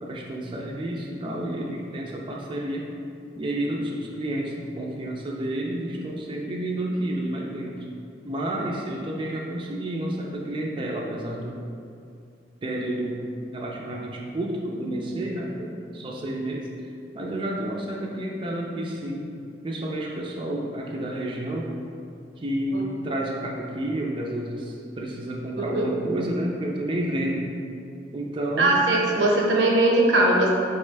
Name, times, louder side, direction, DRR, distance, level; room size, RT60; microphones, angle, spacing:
voice 1, 0.0-2.9 3.4-7.8 8.2-11.6 12.6-13.2 13.5-16.7 17.1-19.3 19.6-21.7 22.4-27.5 28.1-28.9, right 1 dB, 30° right, -2 dB, 0.4 m, -30 dB
voice 2, 28.6-30.5, right 2 dB, 85° right, -1 dB, 0.7 m, -20 dB
4.3 x 3.2 x 3.3 m, 2.4 s
head